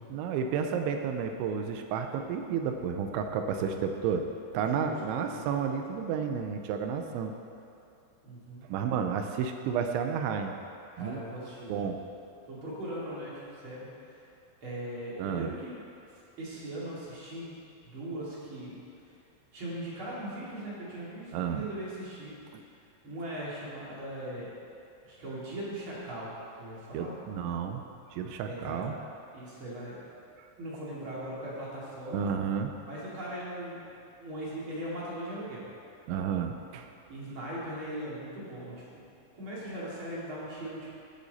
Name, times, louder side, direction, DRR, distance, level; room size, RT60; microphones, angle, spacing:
voice 1, 0.1-4.3 4.5-7.3 8.7-10.6 11.0-11.2 11.7-12.0 15.2-15.5 21.3-21.7 22.5-22.6 26.9-27.8 28.1-29.0 32.1-32.7 36.1-36.9, right 7 dB, 80° right, 5 dB, 3.0 m, -31 dB
voice 2, 4.6-5.5 8.2-8.6 11.0-11.9 12.5-14.2 14.6-15.8 16.4-17.6 17.9-18.8 19.5-22.3 23.0-24.5 25.0-26.3 26.6-27.1 28.4-29.0 29.3-30.0 30.6-32.3 32.9-33.8 34.2-35.7 37.1-39.0 39.3-40.9, right 1 dB, 35° right, -7 dB, 2.4 m, -39 dB
16.0 x 8.1 x 4.2 m, 2.5 s
omnidirectional pair, 5.4 m